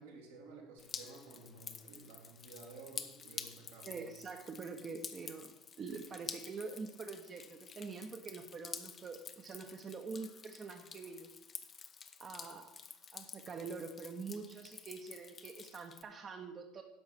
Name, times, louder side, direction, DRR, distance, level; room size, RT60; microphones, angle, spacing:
voice 1, 0.0-4.0, right 3 dB, 85° right, -2 dB, 2.6 m, -53 dB
Drip, 0.8-16.0, left 6 dB, 35° left, 0.9 m, -50 dB
voice 2, 3.8-11.3 12.2-12.7 13.1-16.8, right 4 dB, 35° right, 4 dB, 1.1 m, -45 dB
11.0 x 6.4 x 6.0 m, 0.93 s
hypercardioid pair, 70°, 0 cm